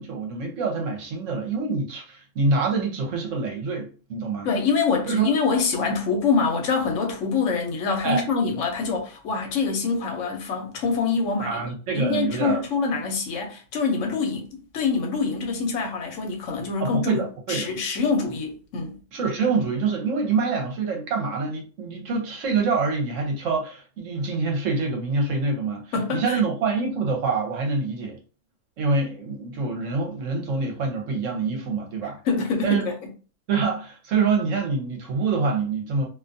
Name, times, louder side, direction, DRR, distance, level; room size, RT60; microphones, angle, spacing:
voice 1, 0.0-4.5 5.1-5.3 8.0-8.2 11.4-12.6 16.8-17.7 19.1-28.2 28.8-32.2 32.6-32.8 33.5-36.1, right 4 dB, 75° right, 1.1 m, -26 dB
voice 2, 4.4-11.6 11.9-14.5 14.7-17.2 17.5-19.0 25.9-26.4 32.2-32.9, left 5 dB, 75° left, 1.0 m, -25 dB
2.6 x 2.3 x 2.5 m
omnidirectional pair, 1.3 m